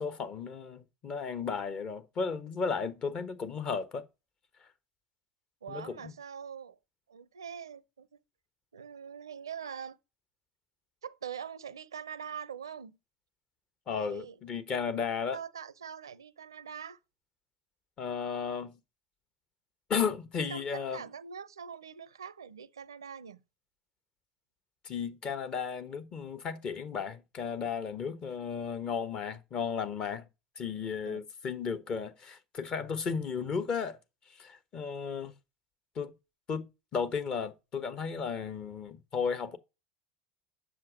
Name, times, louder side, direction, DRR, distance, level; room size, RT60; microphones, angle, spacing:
voice 1, 0.0-4.0 5.7-6.1 13.9-15.4 18.0-18.8 19.9-21.0 24.8-30.2 30.6-34.0 34.4-35.3 35.9-36.1 36.5-36.7 36.9-39.6, left 6 dB, 45° left, 1.2 m, -34 dB
voice 2, 5.6-6.8 7.1-8.2 8.7-10.0 11.0-13.0 13.9-14.4 15.3-17.0 20.5-23.4 31.1-31.2, right 7 dB, 90° right, 0.5 m, -43 dB
7.5 x 6.3 x 6.2 m
hypercardioid pair, 75°, 2 cm